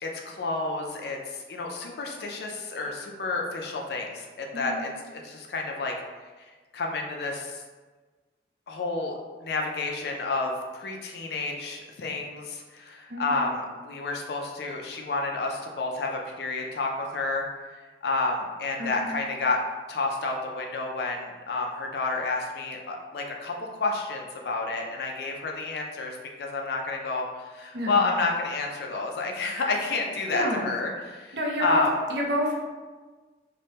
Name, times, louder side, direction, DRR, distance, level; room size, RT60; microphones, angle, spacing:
voice 1, 0.0-5.9 6.7-7.6 8.7-9.1 9.4-17.5 18.0-19.6 19.9-23.5 23.8-31.9, left 3 dB, 60° left, 1 dB, 0.4 m, -30 dB
voice 2, 4.5-4.8 13.1-13.5 18.8-19.2 27.7-28.0 30.3-30.7 31.3-32.5, equal, 65° right, -2 dB, 0.6 m, -29 dB
3.1 x 2.1 x 2.7 m, 1.3 s
head